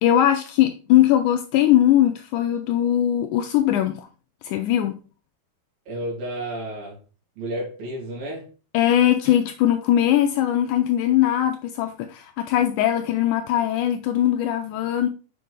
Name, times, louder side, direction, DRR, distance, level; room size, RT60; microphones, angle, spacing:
voice 1, 0.0-4.1 4.4-5.0 8.7-15.1, left 12 dB, 85° left, 1.7 m, -20 dB
voice 2, 5.9-7.0 7.4-8.4, right 1 dB, 75° right, 4.6 m, -31 dB
7.4 x 5.3 x 3.4 m
omnidirectional pair, 4.1 m